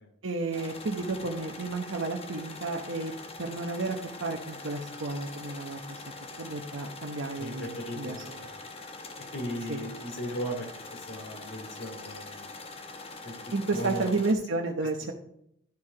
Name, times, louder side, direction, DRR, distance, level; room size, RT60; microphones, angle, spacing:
voice 1, 0.2-3.1 3.4-6.0 6.4-8.2 9.7-9.8 13.5-15.1, right 3 dB, 85° right, 1 dB, 0.9 m, -32 dB
sound 1, 0.5-14.3, left 3 dB, 30° left, 1.0 m, -43 dB
voice 2, 7.4-8.5 9.3-10.7 10.9-12.5 13.2-13.3 13.7-14.2, equal, 75° left, 2 dB, 2.7 m, -37 dB
12.0 x 4.7 x 4.8 m, 0.75 s
head